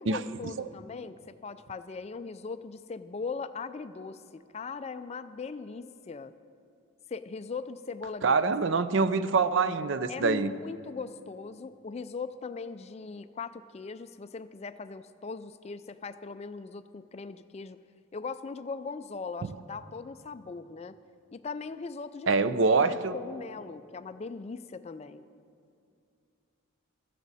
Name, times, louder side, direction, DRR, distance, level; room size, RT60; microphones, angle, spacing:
voice 1, 0.0-6.3 7.1-8.5 10.1-17.8 18.1-21.0 21.3-25.2, left 4 dB, 30° left, 0.3 m, -40 dB
voice 2, 8.2-10.5 22.3-23.1, right 4 dB, 60° right, 0.5 m, -25 dB
17.0 x 14.0 x 4.1 m
head